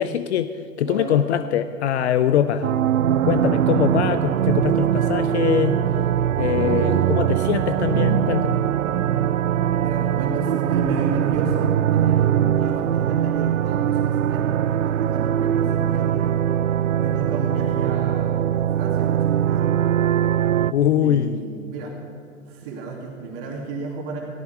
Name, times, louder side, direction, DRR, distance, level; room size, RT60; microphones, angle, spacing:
voice 1, 0.0-2.7 3.2-5.8 6.4-8.5 20.7-21.4, left 10 dB, 55° left, 12 dB, 0.7 m, -22 dB
voice 2, 0.8-1.2 6.7-7.0 7.8-8.2 9.8-16.3 17.0-19.7 21.0-21.9 22.5-24.2, right 3 dB, 45° right, -1 dB, 2.6 m, -32 dB
sound 1, 2.6-20.7, right 10 dB, 75° right, 0.6 m, -21 dB
18.0 x 14.0 x 4.8 m, 2.5 s
figure-of-eight pair, 110°, 40 cm